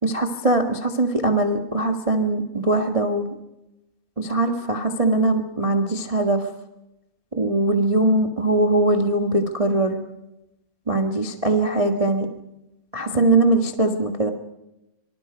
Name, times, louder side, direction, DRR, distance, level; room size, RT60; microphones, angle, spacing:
voice 1, 0.0-3.2 4.2-6.5 7.3-10.0 10.9-12.3 12.9-14.3, right 2 dB, 55° right, 5 dB, 0.3 m, -21 dB
26.0 x 24.5 x 5.3 m, 0.91 s
omnidirectional pair, 4.4 m